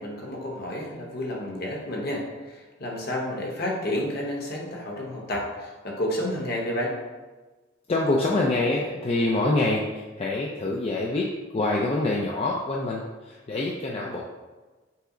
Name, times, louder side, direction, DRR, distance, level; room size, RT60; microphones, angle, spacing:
voice 1, 0.0-2.2 2.5-6.9, left 1 dB, 50° left, -1 dB, 0.9 m, -30 dB
voice 2, 7.9-14.2, left 2 dB, 30° left, -3 dB, 0.3 m, -26 dB
5.6 x 2.0 x 3.7 m, 1.2 s
head